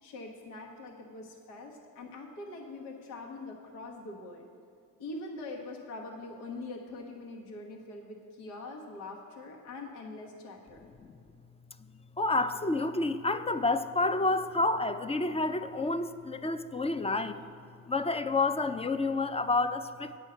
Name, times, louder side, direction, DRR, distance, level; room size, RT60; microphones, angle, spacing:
voice 1, 0.0-4.4 5.0-10.8, left 2 dB, 90° left, -1 dB, 1.3 m, -43 dB
voice 2, 10.8-11.1 12.2-17.5 17.9-20.2, left 3 dB, 15° left, 10 dB, 0.4 m, -29 dB
8.9 x 5.5 x 7.7 m, 2.6 s
supercardioid pair, 65°, 38 cm